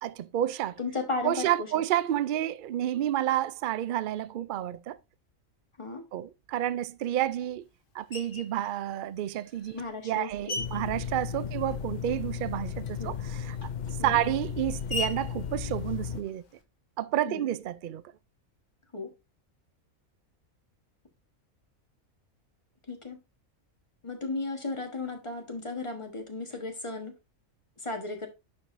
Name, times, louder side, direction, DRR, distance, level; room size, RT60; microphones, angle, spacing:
voice 1, 0.0-0.8 1.2-5.0 6.1-7.6 7.9-9.8 10.0-13.6 14.0-16.4 17.0-18.0, right 12 dB, 85° right, 0.4 m, -30 dB
voice 2, 0.8-1.7 5.8-6.0 9.7-10.7 11.4-11.5 13.0-13.2 14.0-14.2 17.2-17.5 18.9-19.1 22.9-23.2 24.0-27.1 27.8-28.3, left 3 dB, 25° left, 1.2 m, -35 dB
Screech, 8.1-8.6 9.3-12.0 12.3-16.6, left 2 dB, 45° left, 1.0 m, -41 dB
sound 1, 10.6-16.2, left 7 dB, 70° left, 0.4 m, -35 dB
9.8 x 4.8 x 2.6 m
omnidirectional pair, 1.4 m